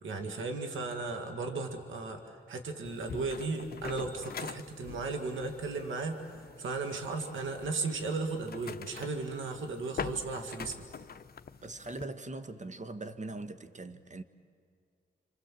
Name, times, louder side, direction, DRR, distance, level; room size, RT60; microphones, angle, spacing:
voice 1, 0.0-10.9, right 3 dB, 90° right, 2.0 m, -36 dB
sound 1, 2.9-12.1, left 6 dB, 55° left, 0.8 m, -45 dB
voice 2, 11.6-14.2, right 2 dB, 40° right, 1.4 m, -41 dB
27.5 x 25.5 x 7.6 m
cardioid pair, 65°, 20 cm